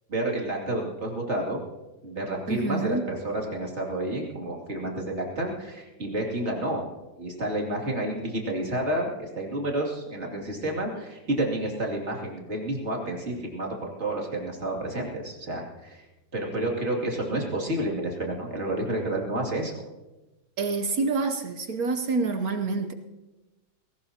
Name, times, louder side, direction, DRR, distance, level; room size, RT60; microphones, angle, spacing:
voice 1, 0.1-1.6 2.0-6.9 7.2-16.1 16.3-19.7, right 1 dB, 35° right, -1 dB, 2.8 m, -30 dB
voice 2, 2.5-3.1 20.6-22.9, right 4 dB, 55° right, 7 dB, 1.1 m, -27 dB
20.0 x 18.0 x 2.9 m, 1.1 s
omnidirectional pair, 2.2 m